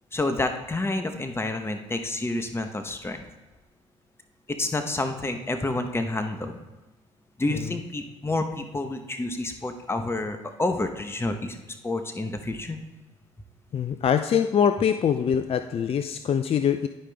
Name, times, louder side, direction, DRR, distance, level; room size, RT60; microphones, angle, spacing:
voice 1, 0.1-3.2 4.5-6.6 7.4-11.6 11.8-12.8, left 2 dB, 15° left, 7 dB, 0.9 m, -29 dB
voice 2, 13.7-16.9, left 8 dB, 45° left, 9 dB, 0.4 m, -24 dB
11.0 x 5.0 x 3.4 m, 1.1 s
supercardioid pair, 60°, 14 cm